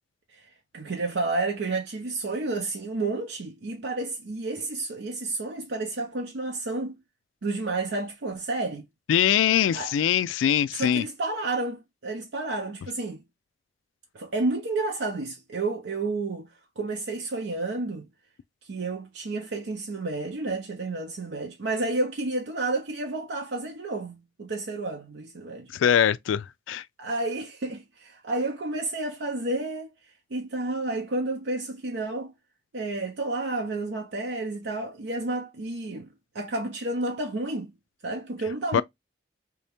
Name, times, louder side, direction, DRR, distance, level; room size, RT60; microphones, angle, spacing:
voice 1, 0.3-7.0 7.4-8.9 9.7-9.9 10.7-13.2 14.1-16.5 16.8-18.1 18.6-25.7 27.0-29.9 30.3-32.3 32.7-36.1 36.3-37.7 38.0-38.8, right 2 dB, 70° right, 0.6 m, -31 dB
voice 2, 9.1-11.0 25.7-26.8 38.7-38.8, left 9 dB, 85° left, 0.3 m, -22 dB
3.4 x 2.8 x 3.4 m
head